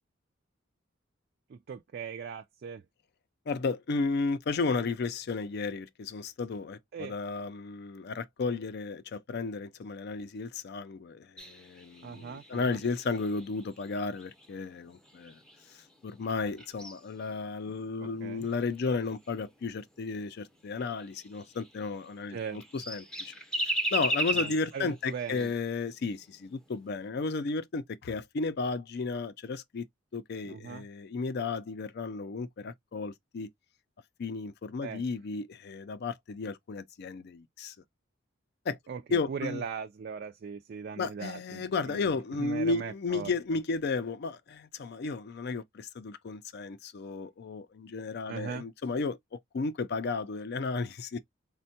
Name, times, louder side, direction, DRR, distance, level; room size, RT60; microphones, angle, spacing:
voice 1, 1.5-2.8 6.9-7.1 12.0-12.8 18.0-18.5 22.3-22.6 24.3-25.5 30.4-30.9 34.8-35.0 38.9-42.1 42.4-43.3 48.3-48.7, right 6 dB, 50° right, 0.3 m, -39 dB
voice 2, 3.5-15.4 16.0-23.3 23.9-29.9 30.1-33.5 34.2-37.8 38.7-38.8 39.1-39.6 41.0-49.2 49.5-51.2, left 4 dB, 55° left, 0.4 m, -33 dB
sound 1, 11.4-15.9 16.2-19.5 20.0-20.1 20.4-20.5 20.8-22.2 22.5-25.9 26.2-26.3 26.7-27.0, right 1 dB, 5° left, 0.5 m, -37 dB
4.3 x 2.2 x 2.7 m
head